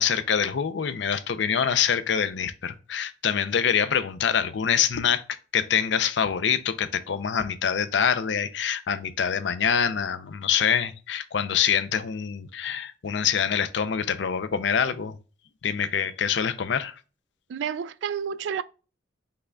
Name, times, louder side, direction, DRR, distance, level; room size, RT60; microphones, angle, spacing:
voice 1, 0.0-15.2 15.6-17.0, left 7 dB, 70° left, 0.5 m, -25 dB
voice 2, 17.5-18.6, right 7 dB, 70° right, 0.3 m, -30 dB
5.6 x 2.3 x 3.7 m
head